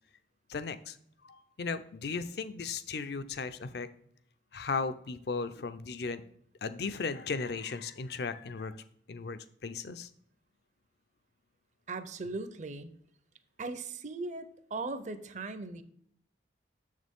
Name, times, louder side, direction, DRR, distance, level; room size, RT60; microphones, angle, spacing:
voice 1, 0.5-1.0 1.2-3.9 4.5-6.2 6.6-8.8 9.1-10.1, left 4 dB, 60° left, 12 dB, 0.5 m, -36 dB
voice 2, 11.9-12.9 13.6-15.8, right 3 dB, 40° right, 11 dB, 0.6 m, -38 dB
7.0 x 6.4 x 3.5 m, 0.68 s
head